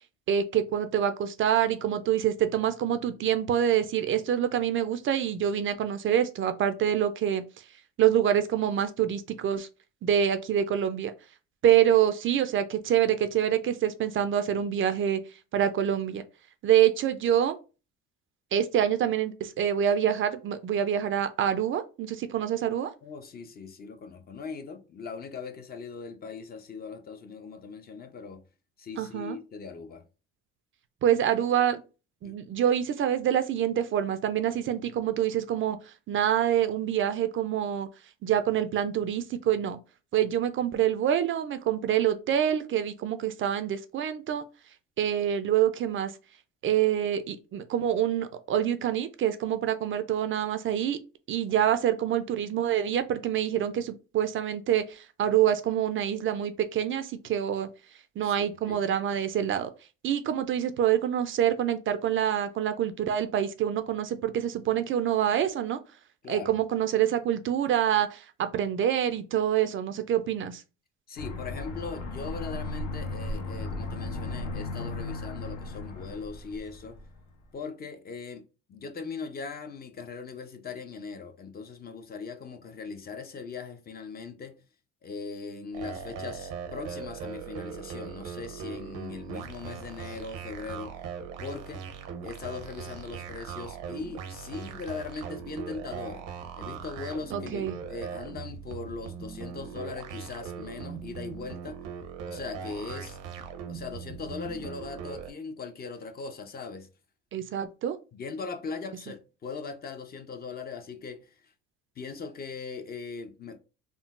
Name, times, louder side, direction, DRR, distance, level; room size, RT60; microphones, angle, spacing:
voice 1, 0.3-7.4 8.0-9.7 10.0-11.1 11.6-15.2 15.5-16.2 16.6-17.6 18.5-22.9 29.0-29.4 31.0-31.8 32.2-37.9 38.2-39.8 40.1-44.4 45.0-46.1 46.6-51.0 51.3-57.7 58.2-59.7 60.0-65.8 66.3-70.6 97.3-97.8 107.3-108.0, right 10 dB, 45° right, 0.4 m, -26 dB
voice 2, 23.0-28.4 28.8-30.0 32.2-32.4 58.2-58.8 66.2-66.5 71.1-77.0 77.5-84.6 85.0-91.0 91.4-91.8 92.2-96.3 96.6-101.8 102.3-103.2 103.7-106.9 108.1-111.5 112.0-113.6, left 5 dB, 30° left, 0.5 m, -40 dB
Aircraft, 71.2-77.3, left 2 dB, 80° left, 0.9 m, -36 dB
sound 1, 85.7-105.3, right 6 dB, 85° right, 0.8 m, -40 dB
3.7 x 2.0 x 2.4 m
supercardioid pair, 95°, 30 cm